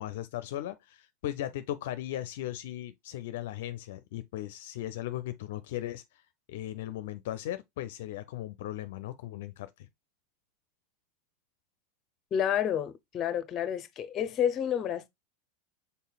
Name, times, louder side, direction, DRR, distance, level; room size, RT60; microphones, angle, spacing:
voice 1, 0.0-6.0 6.5-9.7, left 13 dB, 70° left, 0.5 m, -37 dB
voice 2, 12.3-15.1, left 9 dB, 35° left, 0.7 m, -29 dB
5.5 x 4.2 x 2.3 m
hypercardioid pair, 105°, 0 cm